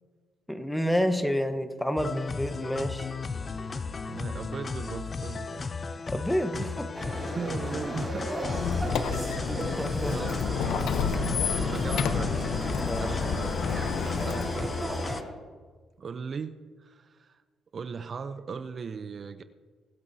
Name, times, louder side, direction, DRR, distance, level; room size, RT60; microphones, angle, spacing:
voice 1, 0.5-3.1 6.1-6.9 9.6-10.4 12.7-13.1, equal, 5° left, 8 dB, 1.1 m, -29 dB
sound 1, 2.0-15.2, left 4 dB, 35° left, 0.5 m, -35 dB
voice 2, 4.1-5.7 6.6-6.7 7.4-8.7 10.1-12.4 12.8-13.5 14.0-14.8 16.0-17.4 17.7-19.4, right 5 dB, 45° right, 11 dB, 0.6 m, -38 dB
sound 2, 6.9-15.2, right 1 dB, 15° right, 3.8 m, -35 dB
Squeak, 8.4-14.8, left 6 dB, 75° left, 0.8 m, -30 dB
24.5 x 8.6 x 2.7 m, 1.5 s
cardioid pair, 90°, 0 cm